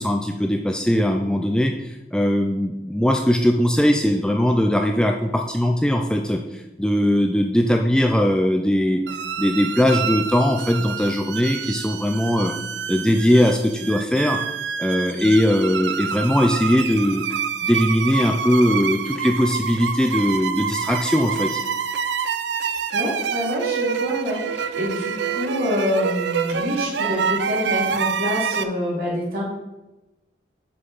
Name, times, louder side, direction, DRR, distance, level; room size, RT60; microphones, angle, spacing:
voice 1, 0.0-9.0 9.4-12.5 12.9-14.4 14.8-17.2 17.6-21.6, equal, 5° left, 3 dB, 0.4 m, -20 dB
sound 1, 9.1-28.6, right 7 dB, 75° right, 0.5 m, -27 dB
voice 2, 22.9-29.4, left 1 dB, 50° right, -4 dB, 3.0 m, -26 dB
6.8 x 5.5 x 5.4 m, 1.0 s
head